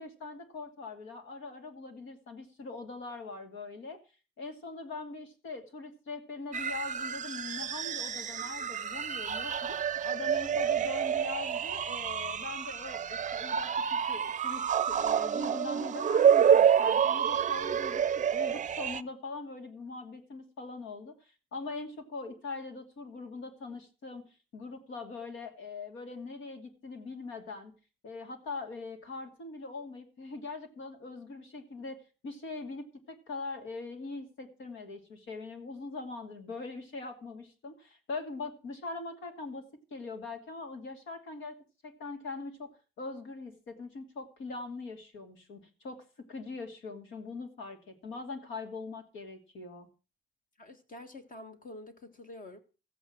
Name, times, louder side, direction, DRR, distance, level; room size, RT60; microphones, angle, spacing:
voice 1, 0.0-4.0 4.4-21.1 21.5-27.7 28.0-32.0 32.2-41.6 41.8-49.9, left 3 dB, 75° left, 2.7 m, -42 dB
sound 1, 6.5-19.0, right 8 dB, 40° right, 0.5 m, -28 dB
voice 2, 50.6-52.6, left 1 dB, 45° left, 1.8 m, -47 dB
14.0 x 8.3 x 6.0 m
cardioid pair, 90°, 20 cm